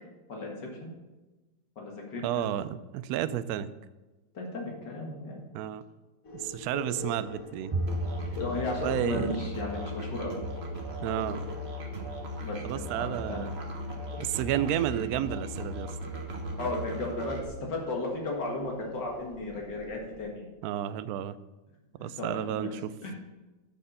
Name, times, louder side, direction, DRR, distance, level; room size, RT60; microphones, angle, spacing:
voice 1, 0.3-0.9 1.8-2.4 4.3-5.4 8.4-10.4 12.4-13.5 16.6-20.5 22.0-22.7 23.0-23.1, left 2 dB, 65° left, 0 dB, 2.5 m, -35 dB
voice 2, 2.2-3.7 5.5-5.8 6.3-7.7 8.8-9.5 11.0-11.4 12.6-13.5 14.2-16.0 20.6-21.4 22.0-22.9, right 11 dB, 75° right, 14 dB, 0.9 m, -31 dB
sound 1, 6.2-20.2, left 3 dB, 50° left, 1.7 m, -46 dB
Bowed string instrument, 7.7-11.1, right 1 dB, 55° right, 0.3 m, -37 dB
Musical instrument, 7.9-17.5, equal, 35° right, 1.4 m, -38 dB
10.5 x 6.5 x 5.5 m, 1.1 s
omnidirectional pair, 2.0 m